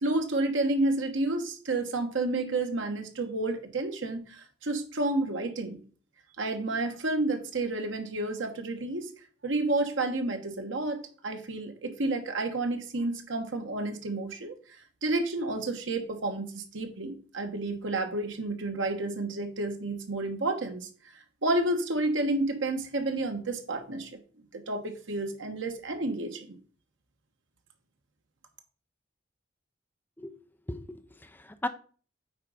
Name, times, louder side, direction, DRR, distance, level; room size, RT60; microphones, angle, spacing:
voice 1, 0.0-5.8 6.4-9.1 9.4-14.5 15.0-20.9 21.4-24.2 24.5-26.6, right 2 dB, 85° right, 5 dB, 1.2 m, -30 dB
voice 2, 30.7-31.7, left 1 dB, 10° left, 8 dB, 0.6 m, -37 dB
8.9 x 3.7 x 5.0 m, 0.41 s
head